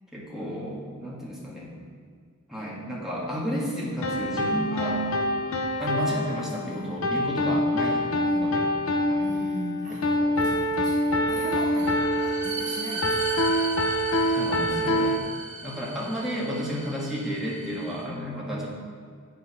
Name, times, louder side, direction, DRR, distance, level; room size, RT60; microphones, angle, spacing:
voice 1, 0.1-1.7 2.5-5.0 5.8-8.1 8.3-8.7 9.1-9.3 9.9-10.4 14.3-15.2 15.6-18.7, equal, ahead, -6 dB, 1.5 m, -32 dB
sound 1, 4.0-15.2, left 1 dB, 85° left, 0.6 m, -26 dB
voice 2, 6.6-7.2 8.2-8.6 9.2-10.1 10.4-13.9, right 2 dB, 35° right, -1 dB, 0.6 m, -39 dB
sound 2, 11.3-18.0, right 2 dB, 65° right, 1.9 m, -37 dB
7.9 x 4.9 x 5.6 m, 2.1 s
head